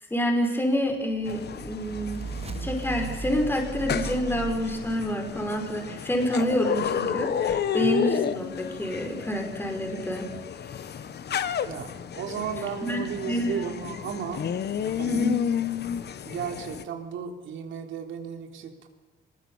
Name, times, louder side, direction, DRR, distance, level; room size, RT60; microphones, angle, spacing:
voice 1, 0.1-2.3 2.6-10.3 12.8-13.8 15.1-15.4, equal, 10° left, 3 dB, 5.0 m, -28 dB
sound 1, 1.2-16.8, left 8 dB, 55° left, 1.3 m, -32 dB
sound 2, 1.2-5.4, right 5 dB, 30° right, 1.1 m, -37 dB
voice 2, 11.6-14.4 14.8-15.3 16.2-18.9, right 7 dB, 75° right, 4 dB, 3.3 m, -35 dB
25.0 x 21.5 x 7.2 m, 1.2 s
cardioid pair, 90°, 20 cm